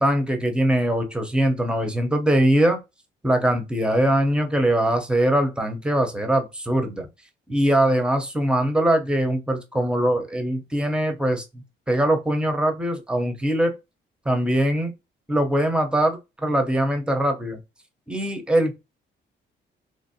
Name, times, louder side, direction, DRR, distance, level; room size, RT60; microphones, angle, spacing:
voice 1, 0.0-2.8 3.2-7.1 7.5-11.4 11.9-13.8 14.3-14.9 15.3-17.6 18.1-18.7, right 1 dB, 5° right, 0.7 m, -22 dB
3.0 x 2.5 x 2.7 m
cardioid pair, 90°, 20 cm